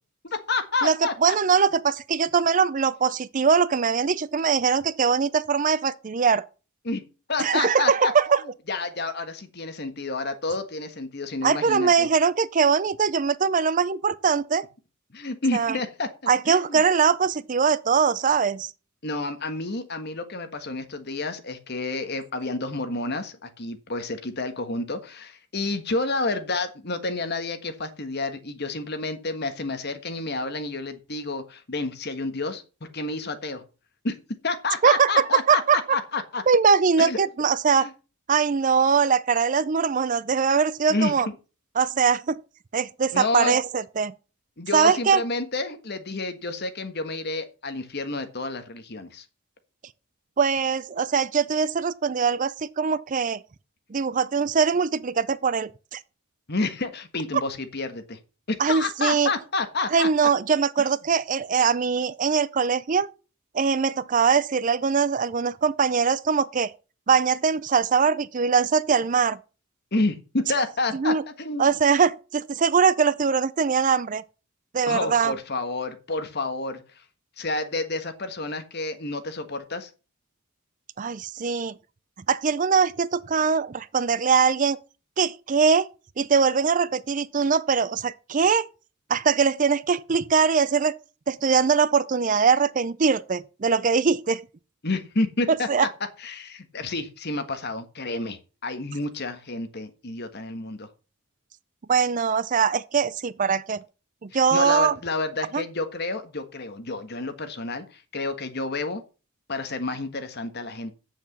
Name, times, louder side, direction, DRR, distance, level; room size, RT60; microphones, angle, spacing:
voice 1, 0.3-1.4 6.8-7.0 7.3-8.1 8.7-12.1 15.1-16.1 16.4-16.8 19.0-32.6 32.9-33.6 34.0-34.1 34.4-36.4 37.0-37.2 37.8-37.9 40.9-41.1 43.1-43.6 44.6-49.2 56.5-58.2 58.5-60.1 69.9-71.7 74.8-76.8 77.4-79.9 94.8-95.7 96.2-100.9 104.3-109.0 109.5-111.0, left 3 dB, 50° left, 1.5 m, -29 dB
voice 2, 1.2-6.4 7.4-8.4 11.4-14.6 15.5-15.8 16.3-18.7 34.8-35.8 36.5-37.9 38.3-41.3 41.8-42.4 42.7-44.1 44.7-45.2 50.4-53.4 53.9-56.0 58.6-59.3 59.9-63.1 63.5-66.7 67.1-69.4 70.9-71.2 71.6-74.2 74.7-75.3 81.0-81.7 82.3-84.8 85.2-85.9 86.2-88.6 89.1-90.9 91.3-94.4 95.5-95.9 101.9-103.8 104.2-104.9 105.5-105.6, right 6 dB, 35° right, 0.4 m, -22 dB
8.1 x 7.1 x 7.1 m
head